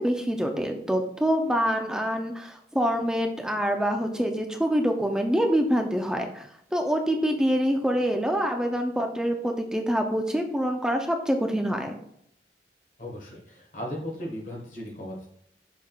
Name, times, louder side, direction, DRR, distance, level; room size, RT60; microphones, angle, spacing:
voice 1, 0.0-11.9, equal, 5° right, 3 dB, 0.4 m, -26 dB
voice 2, 13.0-15.3, equal, 45° left, -1 dB, 1.3 m, -36 dB
6.4 x 3.6 x 2.3 m, 0.69 s
head